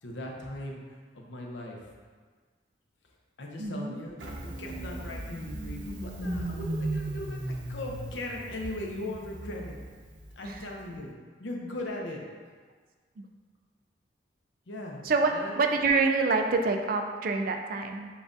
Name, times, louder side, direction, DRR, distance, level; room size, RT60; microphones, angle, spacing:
voice 1, 0.0-1.8 3.4-4.1 4.4-9.8 10.3-11.1 11.4-12.2 14.7-15.0 15.3-15.6, left 1 dB, 80° left, 0 dB, 0.7 m, -38 dB
voice 2, 3.6-4.0 6.2-6.4 10.4-10.8 13.2-13.3 15.0-18.1, right 4 dB, 50° right, 4 dB, 0.3 m, -27 dB
Engine starting, 4.2-10.7, right 1 dB, 85° right, 0.7 m, -36 dB
7.0 x 2.4 x 2.6 m, 1.5 s
head